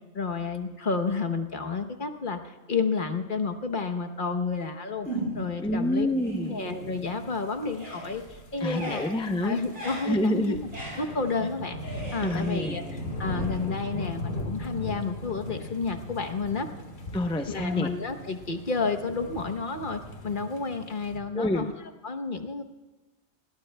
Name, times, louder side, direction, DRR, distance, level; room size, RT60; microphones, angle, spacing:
voice 1, 0.1-2.4 2.7-5.1 5.3-6.1 6.5-8.2 8.5-9.1 9.4-10.7 11.0-16.7 17.5-21.7 22.0-22.6, left 4 dB, 50° left, 6 dB, 1.1 m, -30 dB
sound 1, 5.0-5.6 6.0-7.3 7.6-14.1, right 1 dB, 85° right, 7.6 m, -39 dB
voice 2, 5.6-6.6 8.6-9.6 10.0-10.6 12.2-12.7 17.1-17.9 21.3-21.7, left 1 dB, 5° left, 5 dB, 0.6 m, -27 dB
sound 2, 6.9-21.2, left 1 dB, 70° left, 2.0 m, -39 dB
29.5 x 20.0 x 2.3 m, 1.1 s
omnidirectional pair, 1.2 m